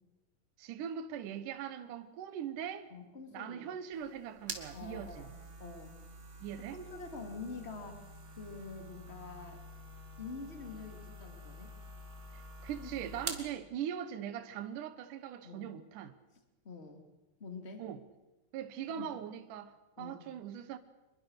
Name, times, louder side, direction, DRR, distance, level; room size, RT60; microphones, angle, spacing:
voice 1, 0.6-2.9 3.3-5.3 6.4-6.8 12.3-16.1 17.8-18.0 18.5-20.8, right 9 dB, 70° right, 2.4 m, -41 dB
voice 2, 2.9-3.8 4.7-6.0 6.6-8.1 8.4-9.6 10.2-11.7 12.8-13.2 15.4-15.7 16.6-17.0 17.4-17.9 18.9-19.1 20.0-20.3, left 4 dB, 20° left, 2.6 m, -46 dB
sound 1, 3.9-13.5, right 1 dB, 25° right, 2.0 m, -47 dB
25.5 x 22.0 x 6.6 m
omnidirectional pair, 4.1 m